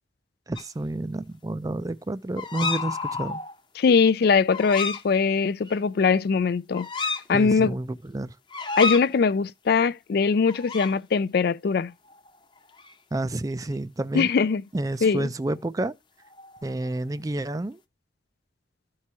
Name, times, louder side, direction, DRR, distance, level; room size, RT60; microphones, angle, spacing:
voice 1, 0.5-3.4 7.3-8.4 13.1-14.3 14.7-15.9 16.6-17.8, right 2 dB, 20° right, 0.4 m, -30 dB
sound 1, 0.6-0.7 2.4-3.6 4.5-5.0 5.7-5.8 6.7-7.2 8.5-9.1 10.5-10.9 12.1-12.4 12.6-12.9 16.3-17.0, left 4 dB, 25° left, 0.8 m, -30 dB
voice 2, 3.8-6.9 7.3-7.7 8.8-11.9 14.1-14.6 15.0-15.3, left 5 dB, 55° left, 0.4 m, -21 dB
14.0 x 4.8 x 2.8 m
head